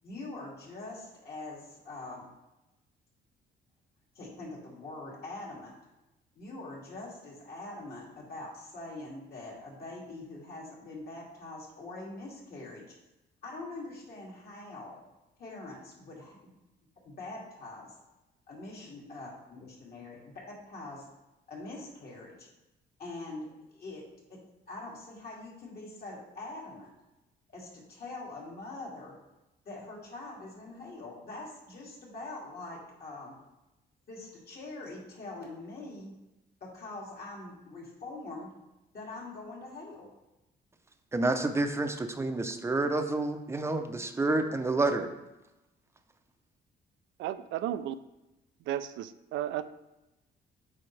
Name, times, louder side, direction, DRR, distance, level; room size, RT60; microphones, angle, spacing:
voice 1, 0.0-2.3 4.1-5.7 6.3-13.0 13.4-15.0 15.4-16.4 17.0-18.0 18.5-21.1 21.5-22.5 23.0-24.0 24.3-24.4 24.7-26.9 27.5-29.1 29.7-33.3 34.1-36.1 36.6-38.5 38.9-40.1, left 2 dB, 55° left, -3 dB, 2.4 m, -43 dB
voice 2, 41.1-45.1, right 2 dB, 15° right, 7 dB, 0.6 m, -29 dB
voice 3, 47.2-47.9 48.7-49.7, right 12 dB, 85° right, 13 dB, 0.4 m, -33 dB
8.5 x 5.0 x 3.3 m, 0.97 s
cardioid pair, 115°, 19 cm